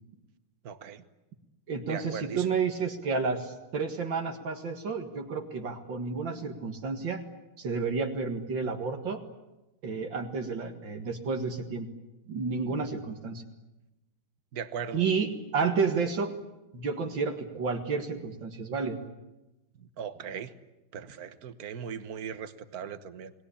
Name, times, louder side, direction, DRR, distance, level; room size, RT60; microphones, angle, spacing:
voice 1, 0.6-1.0 1.8-2.6 14.5-15.0 19.8-20.5 20.9-23.3, right 7 dB, 55° right, 11 dB, 1.6 m, -38 dB
voice 2, 1.7-7.2 7.6-9.2 9.8-11.9 12.3-13.4 14.9-16.3 16.7-19.0, right 5 dB, 70° right, 4 dB, 2.5 m, -31 dB
29.0 x 20.0 x 8.5 m, 1.0 s
omnidirectional pair, 2.1 m